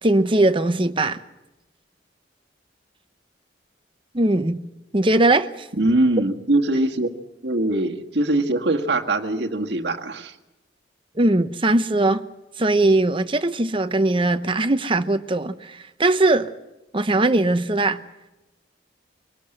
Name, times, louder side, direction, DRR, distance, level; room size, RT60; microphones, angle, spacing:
voice 1, 0.0-1.2 4.1-4.6 4.9-5.7 11.2-12.2 12.6-16.5 16.9-18.0, right 2 dB, 30° right, 0.9 m, -20 dB
voice 2, 5.8-7.1 7.4-10.3, right 2 dB, 65° right, 1.7 m, -22 dB
24.0 x 18.5 x 7.9 m
head